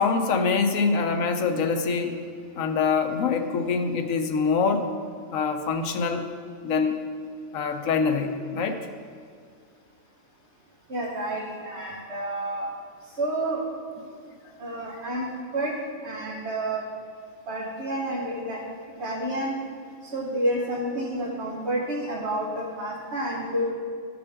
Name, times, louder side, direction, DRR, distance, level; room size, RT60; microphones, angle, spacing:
voice 1, 0.0-2.1 2.6-4.9 5.3-6.3 6.6-7.0 7.5-8.8, left 5 dB, 75° left, 6 dB, 1.1 m, -24 dB
voice 2, 10.9-12.7 13.2-13.6 14.6-16.8 17.5-18.6 19.0-19.6 20.0-23.7, right 1 dB, 55° right, -4 dB, 1.4 m, -29 dB
14.5 x 6.0 x 3.5 m, 2.1 s
omnidirectional pair, 1.4 m